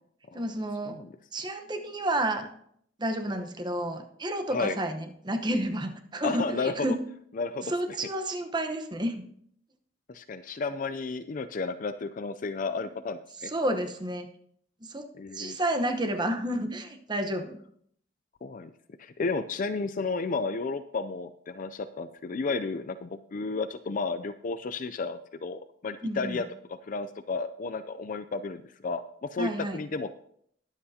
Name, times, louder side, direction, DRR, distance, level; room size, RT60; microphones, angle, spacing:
voice 1, 0.3-1.0 1.3-2.5 3.0-7.0 7.7-9.3 13.5-14.3 14.8-15.1 15.3-17.6 26.0-26.4 29.4-29.8, right 1 dB, 25° right, 7 dB, 1.0 m, -30 dB
voice 2, 0.9-1.2 4.5-4.8 6.2-6.9 7.3-8.0 10.1-13.5 15.2-15.6 18.4-18.7 19.0-30.1, left 4 dB, 50° left, 10 dB, 0.4 m, -33 dB
21.0 x 8.0 x 2.8 m, 0.67 s
head